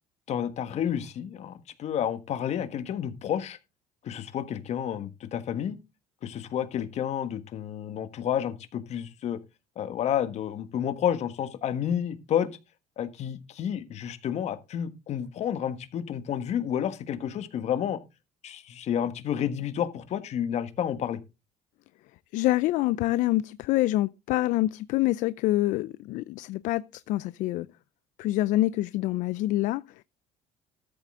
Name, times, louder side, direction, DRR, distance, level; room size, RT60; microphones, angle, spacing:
voice 1, 0.3-3.6 4.0-5.8 6.2-9.4 9.7-12.5 13.0-18.0 18.4-21.2, left 9 dB, 55° left, 1.5 m, -30 dB
voice 2, 22.3-27.7 28.2-30.0, left 16 dB, 70° left, 0.4 m, -26 dB
13.0 x 7.5 x 3.7 m
cardioid pair, 105°, 14 cm